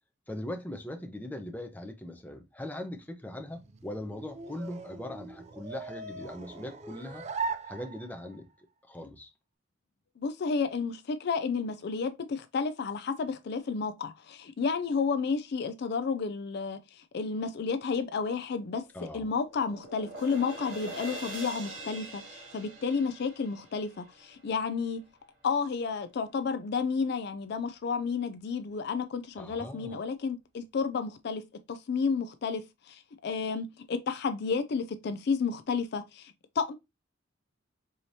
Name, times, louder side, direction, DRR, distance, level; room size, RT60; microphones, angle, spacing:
voice 1, 0.3-7.2 7.7-8.5 8.9-9.3 18.9-19.3 29.4-30.1, left 1 dB, 10° left, 0.7 m, -40 dB
sound 1, 3.4-8.4, right 4 dB, 35° right, 0.4 m, -40 dB
voice 2, 10.2-18.8 19.1-25.0 25.4-31.4 31.7-32.6 32.9-36.7, left 5 dB, 55° left, 0.4 m, -31 dB
sound 2, 18.7-24.9, right 2 dB, 70° right, 1.6 m, -44 dB
4.8 x 2.9 x 2.7 m
head